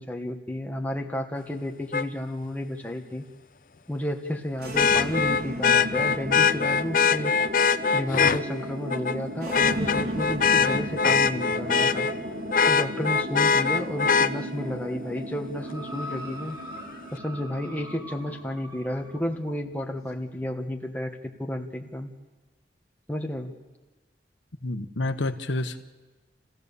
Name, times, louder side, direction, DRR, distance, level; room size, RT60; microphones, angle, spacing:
voice 1, 0.0-3.2 3.9-7.4 7.9-12.1 12.7-16.6 17.1-22.1 23.1-23.5, left 1 dB, 10° left, 2 dB, 1.5 m, -32 dB
Vehicle horn car horn honking, 1.9-2.0 4.8-8.4 8.9-9.2 9.5-12.1 12.5-14.3 16.1-16.2, left 6 dB, 45° left, 0.6 m, -22 dB
sound 1, 4.5-20.6, equal, 55° right, 2.2 m, -36 dB
sound 2, 15.6-19.3 20.1-20.2, equal, 20° right, 3.2 m, -42 dB
voice 2, 24.6-25.8, left 2 dB, 80° left, 8 dB, 1.2 m, -29 dB
29.5 x 15.5 x 7.0 m, 1.2 s
head